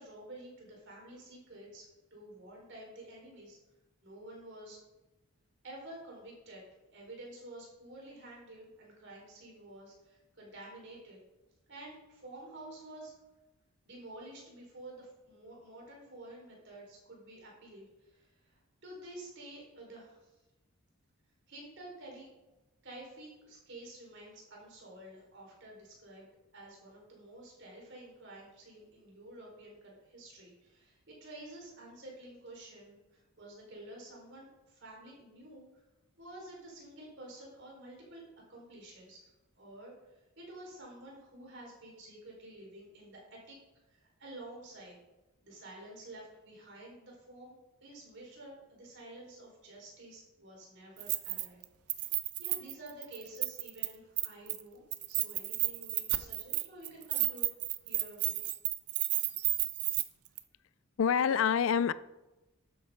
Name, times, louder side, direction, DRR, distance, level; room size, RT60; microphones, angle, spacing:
voice 1, 0.0-3.6 4.0-4.8 5.6-6.6 6.9-11.2 11.7-13.1 13.8-20.4 21.5-22.3 22.8-35.8 36.2-43.6 43.9-45.0 45.4-47.5 47.8-51.6 51.9-52.1 52.4-57.5 57.8-58.4 59.0-59.3, right 1 dB, 55° right, 4.5 m, -50 dB
Keys jangling, 51.0-51.6 51.9-53.9 54.2-54.6 54.9-60.0 60.4-60.5, right 16 dB, 85° right, 0.6 m, -32 dB
voice 2, 61.0-61.9, left 7 dB, 60° left, 0.4 m, -26 dB
12.5 x 9.6 x 3.8 m
head